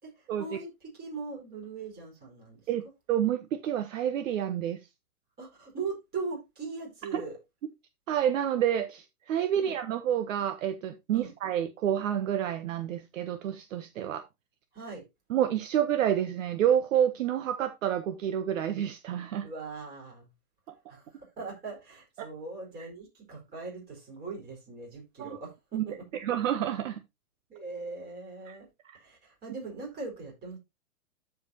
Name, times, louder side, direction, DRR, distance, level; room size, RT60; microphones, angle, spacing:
voice 1, 0.0-2.7 5.4-7.4 9.5-9.7 11.1-11.3 14.7-15.1 19.4-20.3 20.9-26.2 27.5-28.7 28.9-30.6, right 4 dB, 20° right, 4.5 m, -40 dB
voice 2, 2.7-4.8 7.1-7.2 8.1-14.2 15.3-19.5 22.2-22.3 25.2-25.4 25.7-25.8 26.2-27.0 28.5-28.6 28.9-29.0, right 10 dB, 55° right, 0.9 m, -29 dB
13.5 x 4.8 x 2.7 m
hypercardioid pair, 130°, 46 cm